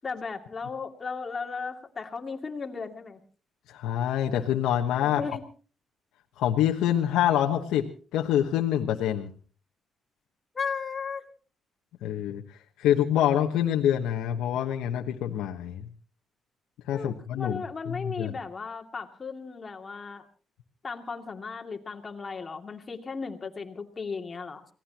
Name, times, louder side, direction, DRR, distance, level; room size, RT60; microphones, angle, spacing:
voice 1, 0.0-3.2 5.0-5.4 10.5-11.2 16.9-20.2 20.8-24.6, left 5 dB, 35° left, 4 dB, 2.6 m, -36 dB
voice 2, 3.7-5.2 6.4-7.9 8.1-9.3 12.0-12.4 12.8-15.9 16.9-18.4, left 11 dB, 90° left, 1 dB, 1.3 m, -26 dB
27.0 x 18.0 x 3.0 m, 0.39 s
cardioid pair, 90°, 0 cm